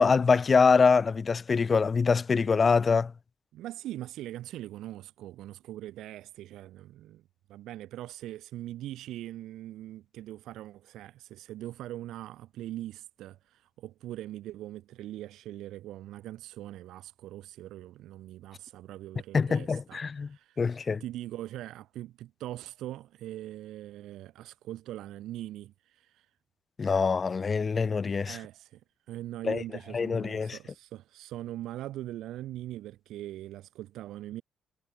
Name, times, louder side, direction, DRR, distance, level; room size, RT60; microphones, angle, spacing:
voice 1, 0.0-3.1 19.3-20.3 20.6-21.0 26.8-28.4 29.4-29.6 29.9-30.6, left 5 dB, 35° left, 1.2 m, -24 dB
voice 2, 3.5-7.2 7.5-26.3 28.2-34.4, right 14 dB, 85° right, 1.4 m, -41 dB
cardioid pair, 90°, 0 cm